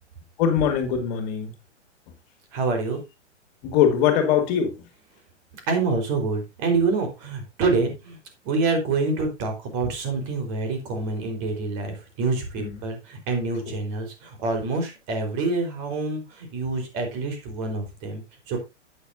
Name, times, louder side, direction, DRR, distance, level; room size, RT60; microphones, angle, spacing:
voice 1, 0.4-1.5 3.6-4.8 12.6-12.8 13.7-13.8, left 8 dB, 40° left, 2.4 m, -22 dB
voice 2, 2.5-3.0 5.7-8.2 8.4-18.6, right 3 dB, 40° right, 4.4 m, -26 dB
11.5 x 9.2 x 2.7 m
figure-of-eight pair, 115°, 36 cm